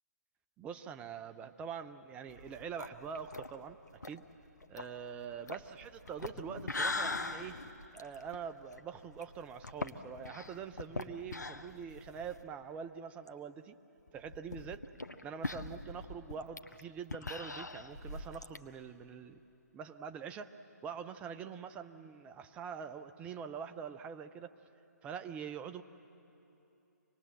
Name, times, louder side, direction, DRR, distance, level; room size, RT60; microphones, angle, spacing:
voice 1, 0.6-3.8 4.0-4.3 4.7-7.6 7.9-13.8 14.1-14.8 15.2-19.4 19.7-20.5 20.8-24.5 25.0-25.8, right 7 dB, 15° right, 10 dB, 0.5 m, -44 dB
sound 1, 2.3-12.5 12.9-13.0 13.3-13.4 14.1-18.6, left 2 dB, 75° left, 1.0 m, -42 dB
25.5 x 19.0 x 7.6 m, 2.9 s
figure-of-eight pair, 130°, 9 cm